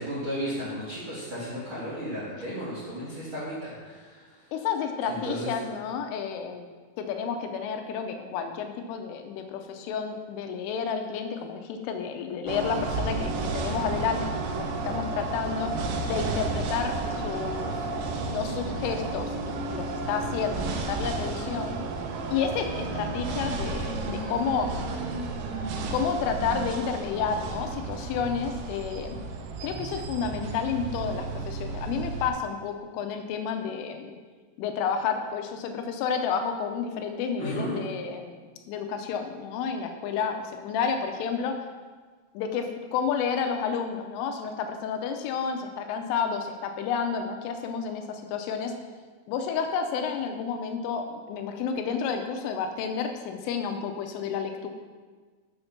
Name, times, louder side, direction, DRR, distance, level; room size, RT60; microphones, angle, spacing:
voice 1, 0.0-4.2 5.1-5.5 37.4-37.8, equal, 65° right, -8 dB, 1.2 m, -34 dB
voice 2, 4.5-6.7 7.0-15.7 16.1-17.9 18.3-19.4 19.7-21.8 22.3-24.7 25.9-29.2 29.6-34.2 34.6-41.6 42.3-48.7 49.3-54.7, left 6 dB, 80° left, 5 dB, 3.0 m, -30 dB
sound 1, 12.5-32.3, right 3 dB, 85° right, 3.5 m, -32 dB
7.8 x 6.6 x 5.8 m, 1.4 s
omnidirectional pair, 5.9 m